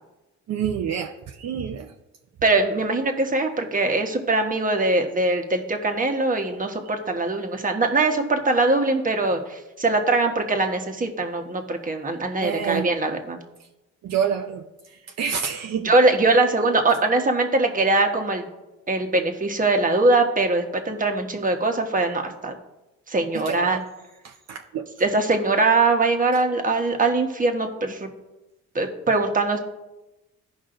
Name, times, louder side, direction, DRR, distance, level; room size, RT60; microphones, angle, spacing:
voice 1, 0.5-1.9 6.8-7.0 12.4-12.9 14.0-15.9 23.3-23.8 24.2-24.9, right 8 dB, 60° right, 3 dB, 0.7 m, -28 dB
voice 2, 2.4-13.4 15.8-18.4 18.9-22.5 23.1-23.8 25.0-28.1 28.7-29.6, right 2 dB, 25° right, 4 dB, 1.2 m, -22 dB
16.0 x 5.4 x 2.6 m, 1.0 s
cardioid pair, 90°, 30 cm